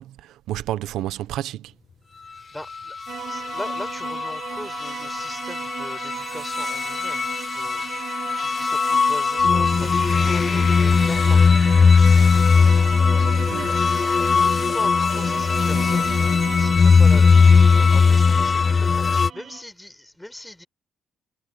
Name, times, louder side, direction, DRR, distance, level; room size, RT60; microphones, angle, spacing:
voice 1, 0.0-1.7 13.5-13.9, right 13 dB, 90° right, 0.9 m, -31 dB
voice 2, 2.5-3.0 3.3-7.3 7.5-7.9 8.3-12.0 14.3-16.1 16.6-20.7, left 1 dB, 10° left, 5.4 m, -40 dB
sound 1, 3.1-19.3, left 5 dB, 35° left, 0.6 m, -18 dB
sound 2, 3.1-19.6, right 9 dB, 65° right, 0.6 m, -36 dB
cardioid pair, 90°, 0 cm